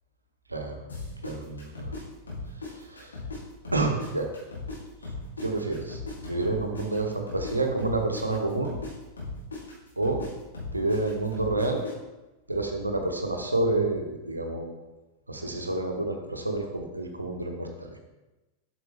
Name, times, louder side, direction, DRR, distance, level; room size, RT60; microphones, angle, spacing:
sound 1, 0.9-3.4 3.6-7.5 7.8-11.9, left 3 dB, 75° left, 2.6 m, -37 dB
voice 1, 1.2-1.9 2.7-3.2 3.7-4.3 5.4-8.8 10.0-10.2 10.7-11.8 12.5-14.7 15.3-18.0, right 2 dB, 80° right, 3 dB, 1.0 m, -29 dB
7.9 x 5.9 x 3.3 m, 1.1 s
figure-of-eight pair, 90°, 0 cm